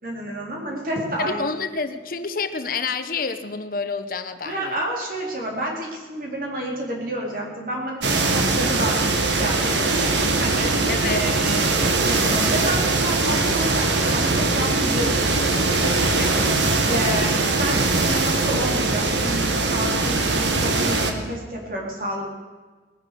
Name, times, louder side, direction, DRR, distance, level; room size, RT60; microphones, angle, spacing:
voice 1, 0.0-1.4 4.4-9.0 9.3-10.0 10.4-10.8 11.2-11.7 12.0-15.3 15.8-16.4 16.9-22.3, right 1 dB, 50° right, -1 dB, 3.8 m, -29 dB
voice 2, 1.2-4.8 10.9-11.3, left 4 dB, 50° left, 10 dB, 0.9 m, -28 dB
sound 1, 8.0-21.1, right 3 dB, 85° right, 1.6 m, -21 dB
19.5 x 10.5 x 6.7 m, 1.3 s
head